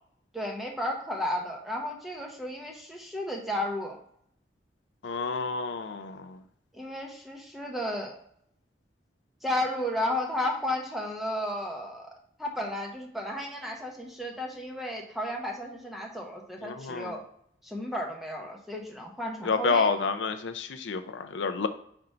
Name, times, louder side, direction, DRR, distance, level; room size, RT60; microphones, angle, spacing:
voice 1, 0.3-4.0 6.7-8.2 9.4-12.1 12.4-17.2 17.6-19.9, left 1 dB, ahead, 0 dB, 1.0 m, -33 dB
voice 2, 5.0-6.4 16.6-17.1 19.4-21.7, left 4 dB, 90° left, 9 dB, 0.5 m, -29 dB
4.5 x 3.9 x 5.5 m, 0.67 s
head